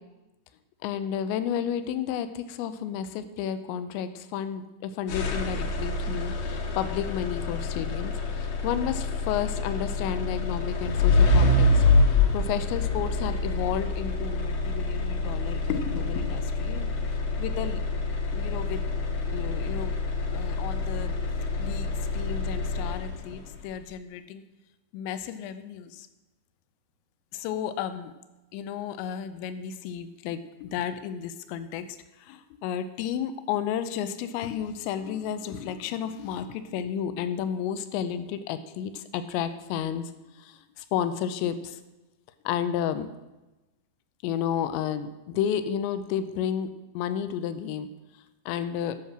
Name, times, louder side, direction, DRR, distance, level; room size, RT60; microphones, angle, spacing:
voice 1, 0.8-16.9 17.4-17.8 18.3-18.9 19.3-19.9 20.3-21.2 21.6-24.5 24.9-26.1 27.3-28.1 28.5-41.8 42.5-43.1 44.2-46.7 46.9-47.9 48.5-49.0, left 9 dB, 85° left, 11 dB, 3.0 m, -32 dB
sound 1, 5.1-23.4, left 3 dB, 65° left, 2.9 m, -26 dB
13.5 x 6.4 x 6.0 m, 1.1 s
omnidirectional pair, 5.2 m